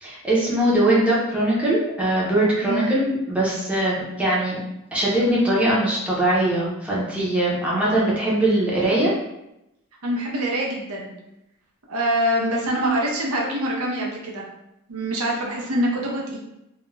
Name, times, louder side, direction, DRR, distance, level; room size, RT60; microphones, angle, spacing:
voice 1, 0.0-4.6 4.9-9.1, right 1 dB, 5° right, -7 dB, 0.6 m, -21 dB
voice 2, 2.6-2.9 10.0-11.1 11.9-14.4 14.9-16.4, right 1 dB, 90° right, -2 dB, 0.6 m, -24 dB
2.3 x 2.1 x 3.1 m, 0.87 s
head